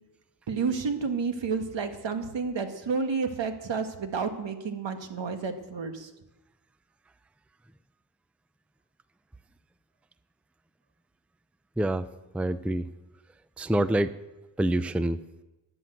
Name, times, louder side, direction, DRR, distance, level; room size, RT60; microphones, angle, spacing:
voice 1, 0.5-6.1, right 5 dB, 70° right, 7 dB, 1.8 m, -30 dB
voice 2, 11.8-12.1 12.3-12.8 13.6-14.1 14.6-15.2, right 1 dB, 5° right, 14 dB, 0.5 m, -26 dB
12.0 x 11.0 x 7.8 m, 1.0 s
cardioid pair, 75°, 45 cm